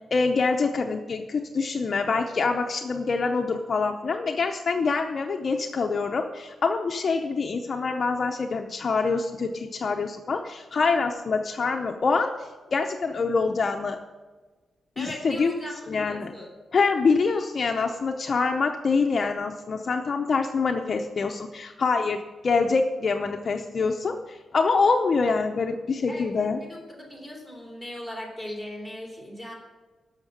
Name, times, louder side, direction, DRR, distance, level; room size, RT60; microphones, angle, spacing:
voice 1, 0.1-14.0 15.0-15.5 15.9-16.3 16.7-22.2 22.4-26.6, left 4 dB, 35° left, 4 dB, 0.6 m, -25 dB
voice 2, 15.0-16.5 26.1-29.5, left 1 dB, 10° right, -2 dB, 2.9 m, -39 dB
12.0 x 6.5 x 6.5 m, 1.3 s
wide cardioid pair, 170°, 0 cm